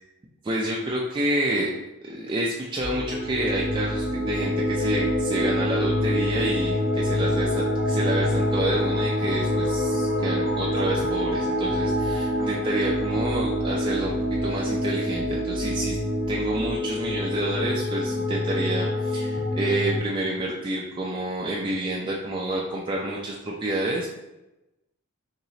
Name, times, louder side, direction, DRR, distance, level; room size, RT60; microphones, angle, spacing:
voice 1, 0.4-1.7 2.0-14.1 14.4-16.0 16.3-24.1, right 1 dB, 20° right, -3 dB, 0.3 m, -29 dB
sound 1, 2.8-20.0, left 1 dB, 45° left, 0.9 m, -26 dB
2.9 x 2.8 x 4.0 m, 0.96 s
head